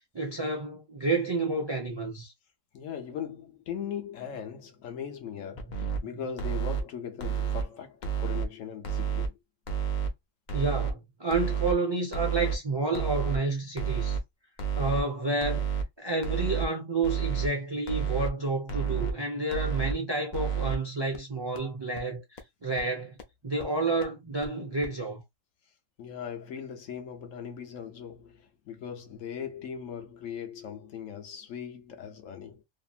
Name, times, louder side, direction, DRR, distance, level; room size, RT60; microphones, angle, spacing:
voice 1, 0.1-2.3 10.5-14.2 14.8-15.7 16.0-23.1 23.4-25.2, right 3 dB, 45° right, 0.3 m, -30 dB
voice 2, 2.7-9.4 26.0-32.6, left 8 dB, 70° left, 1.0 m, -39 dB
sound 1, 5.6-6.0 6.4-6.8 7.2-7.6 8.0-8.4 8.8-9.3 9.7-10.1 10.5-10.9 11.3-11.7 12.1-12.5 12.9-13.4 13.8-14.2 14.6-15.0 15.4-15.8 16.2-16.7 17.0-17.5 17.9-18.3 18.7-19.1 19.5-19.9 20.3-20.7 21.1-21.2 21.6-21.7 22.0-22.1 22.4-22.5 22.8-22.9 23.2-23.3 23.6-23.7 24.0-24.1 24.4-24.5 24.8-24.9, right 7 dB, 50° left, 0.5 m, -30 dB
2.8 x 2.5 x 2.3 m
omnidirectional pair, 1.4 m